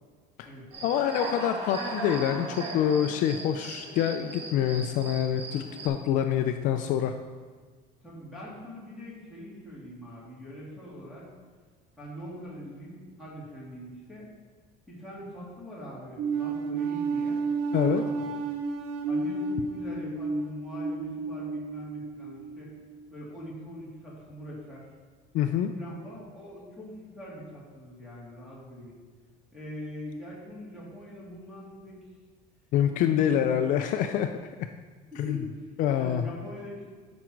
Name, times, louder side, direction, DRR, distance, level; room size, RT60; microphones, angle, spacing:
Human voice / Cricket, 0.7-5.9, right 2 dB, 35° right, 1.9 m, -38 dB
voice 1, 0.8-7.1 17.7-18.0 25.3-25.7 32.7-34.3 35.2-35.4 35.8-36.2, left 10 dB, 55° left, 6 dB, 0.5 m, -26 dB
voice 2, 8.0-11.3 12.0-14.3 14.9-17.4 17.8-18.3 19.0-22.7 23.1-24.8 25.8-28.9 29.5-32.0 32.9-33.7 35.1-35.7 35.9-36.9, equal, ahead, -7 dB, 3.0 m, -43 dB
sound 1, 16.2-22.6, right 4 dB, 75° right, 1.0 m, -31 dB
11.5 x 6.2 x 4.6 m, 1.5 s
cardioid pair, 170°, 16 cm